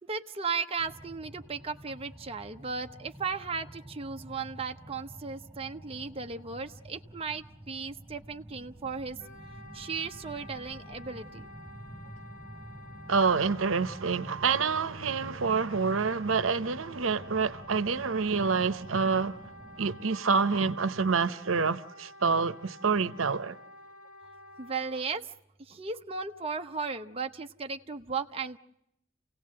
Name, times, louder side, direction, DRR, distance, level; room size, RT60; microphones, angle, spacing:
voice 1, 0.0-9.2 9.7-11.5 24.6-25.3 25.6-28.6, right 5 dB, 30° right, 0.8 m, -36 dB
sound 1, 0.8-20.0, right 1 dB, 5° right, 6.2 m, -49 dB
Wind instrument woodwind instrument, 9.2-25.1, left 1 dB, 45° left, 3.1 m, -51 dB
voice 2, 13.1-19.4 19.8-23.5, right 5 dB, 85° right, 0.8 m, -27 dB
29.0 x 17.0 x 7.6 m
head